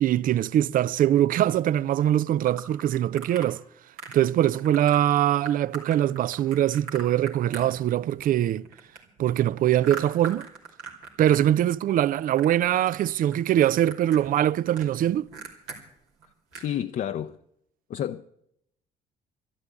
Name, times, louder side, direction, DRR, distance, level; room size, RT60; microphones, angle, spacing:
voice 1, 0.0-3.6 4.1-8.7 9.2-10.5 11.2-15.3, right 12 dB, 60° right, 0.5 m, -22 dB
sound 1, 2.5-3.5 4.0-4.3 4.5-5.0 5.4-8.2 8.5-11.4 11.7-12.6 12.8-13.4 13.6-15.8 16.2-16.3 16.5-16.7, right 5 dB, 85° right, 2.8 m, -40 dB
voice 2, 16.5-17.4 17.9-18.2, left 10 dB, 55° left, 0.6 m, -30 dB
12.0 x 12.0 x 8.3 m
hypercardioid pair, 55°, 16 cm